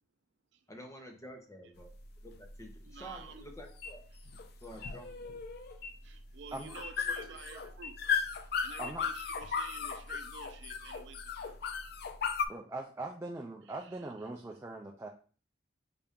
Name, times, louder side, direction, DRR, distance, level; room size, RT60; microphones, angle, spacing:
voice 1, 0.7-1.9 2.2-4.0 4.6-5.4, equal, 15° left, 3 dB, 0.8 m, -49 dB
sound 1, 1.8-12.5, left 6 dB, 60° left, 0.4 m, -37 dB
voice 2, 2.8-3.4 4.1-4.2 5.7-8.0 8.6-11.6 13.7-14.1, right 5 dB, 75° right, 8 dB, 0.5 m, -51 dB
sound 2, 3.7-3.9 4.7-4.9 5.7-5.9 6.7-6.9 7.7-7.9 8.7-8.9, left 4 dB, 75° left, 1.0 m, -45 dB
voice 3, 7.1-7.6 8.8-9.1 12.5-15.1, right 2 dB, 15° right, 1 dB, 0.4 m, -42 dB
5.6 x 2.5 x 3.6 m, 0.39 s
head